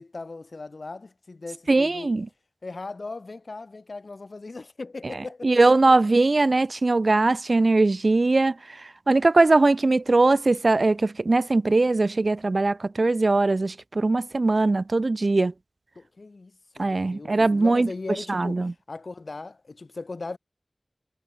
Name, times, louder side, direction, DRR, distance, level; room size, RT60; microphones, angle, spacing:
voice 1, 0.0-2.1 2.6-5.6 16.0-20.4, left 3 dB, 80° left, 6.1 m, -38 dB
voice 2, 1.7-2.3 5.4-15.5 16.8-17.9 18.3-18.7, right 3 dB, 65° right, 2.6 m, -21 dB
wide cardioid pair, 60°, 0 cm